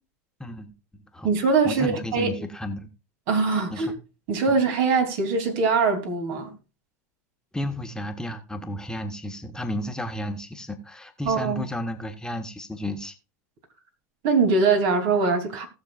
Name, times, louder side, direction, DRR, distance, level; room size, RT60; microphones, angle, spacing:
voice 1, 0.4-1.3 1.6-2.9 3.7-3.9 4.5-4.6 7.5-13.1, left 1 dB, 5° left, 1.3 m, -33 dB
voice 2, 1.2-2.3 3.3-3.9 4.3-6.5 11.2-11.6 14.2-15.7, right 4 dB, 60° right, 3.0 m, -22 dB
18.5 x 6.7 x 2.4 m
hypercardioid pair, 100°, 9 cm